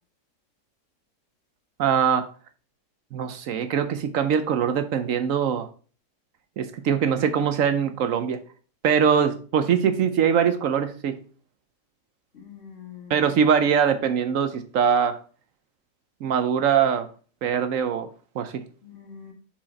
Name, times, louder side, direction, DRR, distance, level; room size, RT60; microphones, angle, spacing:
voice 1, 1.8-2.3 3.1-5.7 6.6-8.4 8.8-11.1 13.1-15.2 16.2-17.1 17.4-18.1 18.4-18.6, right 7 dB, 65° right, 0.9 m, -22 dB
voice 2, 6.9-7.6 7.9-8.0 12.3-13.3 18.8-19.3, left 7 dB, 45° left, 2.1 m, -46 dB
5.7 x 4.9 x 4.1 m
omnidirectional pair, 1.8 m